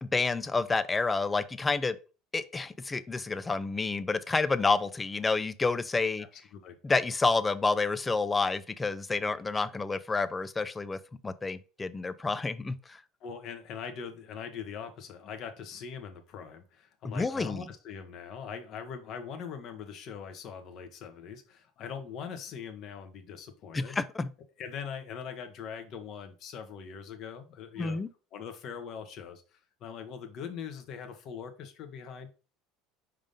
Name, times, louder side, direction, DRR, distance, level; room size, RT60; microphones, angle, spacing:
voice 1, 0.0-2.0 2.3-6.3 6.8-13.0 17.0-17.7 23.7-24.3 27.8-28.1, left 3 dB, 15° left, 0.5 m, -29 dB
voice 2, 6.2-6.8 13.2-24.0 24.6-28.0 28.3-32.3, left 7 dB, 55° left, 1.3 m, -42 dB
5.1 x 3.7 x 5.3 m
supercardioid pair, 105°, 0 cm